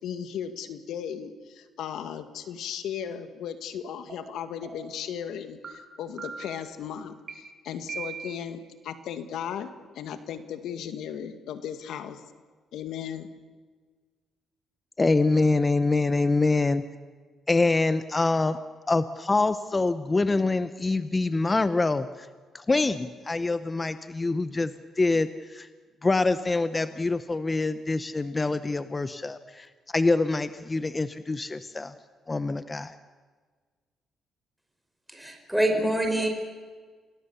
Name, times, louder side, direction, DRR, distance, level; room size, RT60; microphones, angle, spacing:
voice 1, 0.0-9.7 10.0-12.2 12.7-13.3, left 8 dB, 80° left, 8 dB, 1.9 m, -36 dB
sound 1, 4.1-4.2 4.6-5.0 5.6-5.7 6.2-6.6 7.3-7.4 7.9-8.5, right 6 dB, 55° right, 5.5 m, -39 dB
voice 2, 15.0-16.8 17.5-18.6 18.9-22.3 22.5-25.7 26.0-29.7 29.9-31.9 32.3-32.9, left 3 dB, 25° left, 11 dB, 0.9 m, -25 dB
voice 3, 35.1-36.3, right 1 dB, ahead, 3 dB, 4.4 m, -25 dB
28.0 x 19.0 x 7.0 m, 1.5 s
cardioid pair, 90°, 0 cm